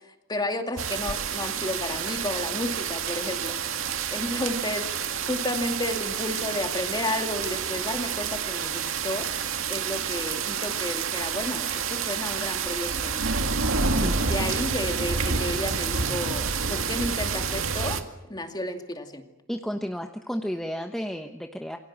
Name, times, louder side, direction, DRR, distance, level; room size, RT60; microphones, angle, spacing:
voice 1, 0.3-3.6 4.1-9.3 9.7-13.3 13.9-18.0 18.3-19.2, left 1 dB, 20° left, 5 dB, 2.5 m, -32 dB
sound 1, 0.8-18.0, right 6 dB, 85° right, 2.0 m, -29 dB
voice 2, 19.5-21.8, equal, ahead, 4 dB, 1.1 m, -32 dB
28.5 x 23.0 x 7.5 m, 0.93 s
head